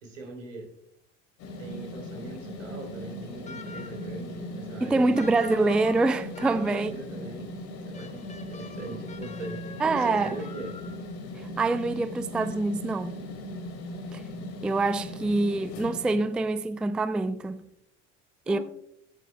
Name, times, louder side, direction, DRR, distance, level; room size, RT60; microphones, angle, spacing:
voice 1, 0.0-0.7 1.6-5.1 6.4-7.5 7.9-8.2 8.5-10.7 18.4-18.6, right 3 dB, 80° right, 3.2 m, -40 dB
sound 1, 1.4-16.8, left 1 dB, 50° left, 2.6 m, -39 dB
sound 2, 3.5-4.2 5.1-7.0 7.9-11.1, left 4 dB, 20° left, 1.1 m, -46 dB
voice 2, 4.8-6.9 9.8-10.3 11.6-13.1 14.1-14.2 14.6-17.6 18.5-18.6, right 3 dB, 5° right, 0.3 m, -25 dB
17.0 x 8.9 x 2.2 m
figure-of-eight pair, 70°, 36 cm